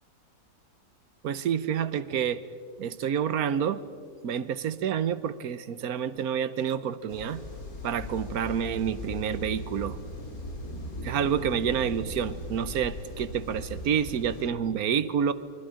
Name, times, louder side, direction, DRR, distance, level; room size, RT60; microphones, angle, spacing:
voice 1, 1.2-2.4 2.8-3.8 4.2-7.4 7.8-10.0 11.0-15.3, right 8 dB, 70° right, 14 dB, 1.3 m, -28 dB
sound 1, 7.1-14.4, left 1 dB, 60° left, 3.2 m, -39 dB
28.0 x 24.0 x 5.1 m, 2.1 s
omnidirectional pair, 1.7 m